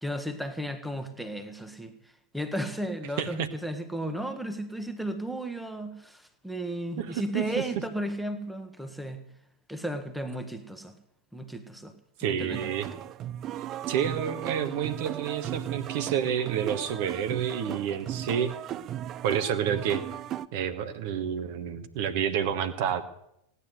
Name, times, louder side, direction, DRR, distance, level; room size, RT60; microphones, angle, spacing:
voice 1, 0.0-9.2 9.7-11.0 11.3-11.9 12.2-12.6, right 1 dB, ahead, 8 dB, 1.5 m, -34 dB
voice 2, 3.2-3.5 7.0-7.1 7.3-7.4 12.2-12.9 13.9-18.5 19.2-20.0 20.5-23.0, right 8 dB, 50° right, 8 dB, 1.3 m, -29 dB
sound 1, 12.5-20.5, right 11 dB, 30° right, 0.5 m, -36 dB
17.0 x 9.7 x 7.9 m, 0.77 s
figure-of-eight pair, 90°, 0 cm